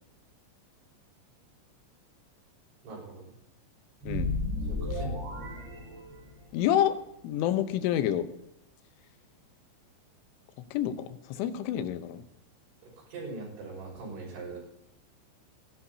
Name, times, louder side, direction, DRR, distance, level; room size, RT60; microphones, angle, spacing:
voice 1, 2.8-3.3 4.6-5.3 13.0-14.6, right 3 dB, 80° right, -1 dB, 8.2 m, -41 dB
sound 1, 4.0-6.6, left 2 dB, 35° right, 4.6 m, -33 dB
voice 2, 4.1-4.4 6.5-7.0 7.2-8.3 10.7-12.2, left 11 dB, 85° left, 11 dB, 3.4 m, -28 dB
28.0 x 11.5 x 2.8 m, 0.79 s
omnidirectional pair, 5.4 m